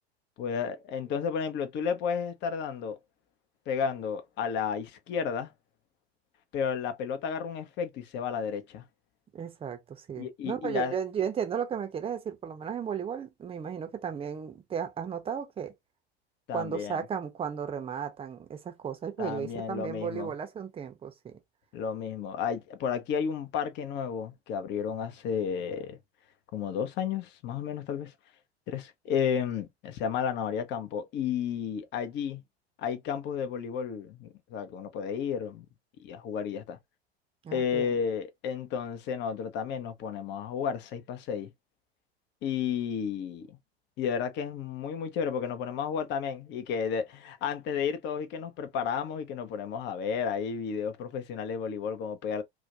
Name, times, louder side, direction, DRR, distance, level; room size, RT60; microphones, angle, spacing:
voice 1, 0.4-3.0 3.7-5.5 6.5-8.8 10.2-10.9 16.5-17.0 19.2-20.3 21.7-26.0 26.5-28.1 28.7-32.4 32.8-35.7 36.0-36.8 37.5-41.5 42.4-43.6 44.0-52.4, left 7 dB, 35° left, 0.6 m, -32 dB
voice 2, 9.3-15.7 16.5-21.4 37.4-37.9, right 7 dB, 15° right, 0.7 m, -34 dB
2.4 x 2.1 x 2.7 m
figure-of-eight pair, 85°, 33 cm